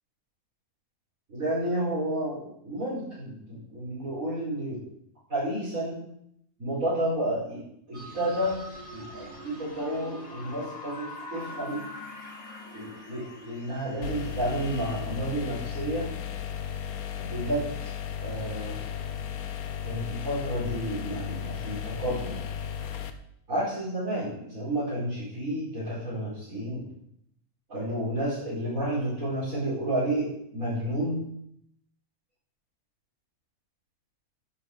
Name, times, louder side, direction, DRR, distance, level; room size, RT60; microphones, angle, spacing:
voice 1, 1.3-4.8 5.3-6.0 6.6-8.6 8.9-11.9 12.7-16.1 17.3-17.9 18.2-18.8 19.8-22.4 23.5-26.9 27.7-31.3, right 1 dB, 65° right, -11 dB, 5.4 m, -31 dB
sound 1, 7.9-15.0, left 1 dB, 50° left, 4.6 m, -43 dB
sound 2, 14.0-23.1, left 8 dB, 85° left, 1.4 m, -35 dB
11.0 x 6.2 x 8.0 m, 0.72 s
omnidirectional pair, 1.5 m